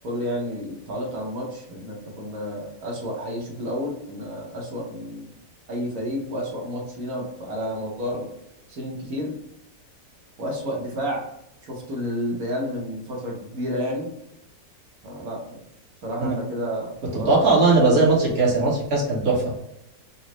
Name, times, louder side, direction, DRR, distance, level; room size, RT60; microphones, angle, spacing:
voice 1, 0.0-5.3 5.7-8.3 8.7-9.4 10.4-11.2 11.6-14.1 15.0-15.6 16.0-17.3, equal, 65° right, -2 dB, 1.3 m, -30 dB
voice 2, 17.1-19.6, right 3 dB, 45° right, -4 dB, 1.2 m, -19 dB
3.9 x 2.0 x 3.0 m, 0.82 s
omnidirectional pair, 1.7 m